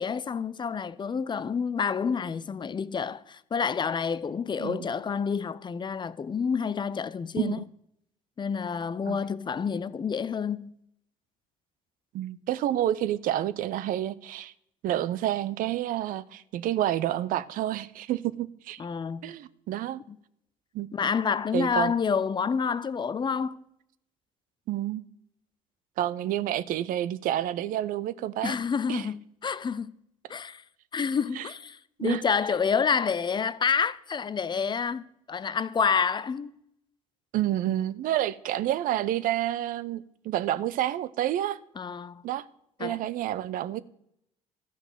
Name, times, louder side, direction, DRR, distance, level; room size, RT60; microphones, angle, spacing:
voice 1, 0.0-7.6 8.4-10.7 18.8-19.4 20.1-20.2 20.9-23.6 28.4-29.9 30.3-30.6 30.9-36.5 41.8-42.2 42.8-43.0, left 6 dB, 25° left, 0.6 m, -28 dB
voice 2, 12.1-14.5 14.8-18.8 19.2-20.0 20.7-20.9 21.5-21.9 24.7-25.0 26.0-28.5 28.9-29.0 31.4-31.5 32.0-32.2 37.3-41.6 42.2-42.4 42.8-43.8, right 12 dB, 50° right, 0.6 m, -29 dB
13.5 x 6.0 x 6.8 m
figure-of-eight pair, 55°, 18 cm